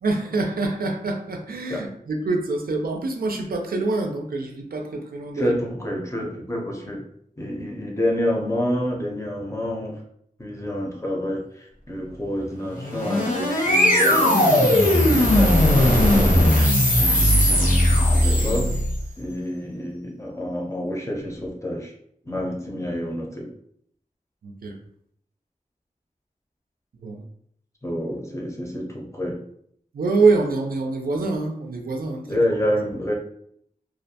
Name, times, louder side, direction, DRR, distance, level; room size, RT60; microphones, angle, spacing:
voice 1, 0.0-5.5 24.4-24.8 27.0-27.2 29.9-32.2, right 3 dB, 90° right, 3 dB, 0.4 m, -25 dB
voice 2, 5.4-7.1 7.4-10.0 10.4-16.6 17.0-18.7 19.2-21.9 22.3-23.5 27.8-29.4 32.3-33.1, left 1 dB, 20° left, -1 dB, 0.6 m, -28 dB
sound 1, 12.7-19.0, left 1 dB, 60° left, 0.9 m, -18 dB
2.4 x 2.1 x 2.7 m, 0.68 s
wide cardioid pair, 65°, 15 cm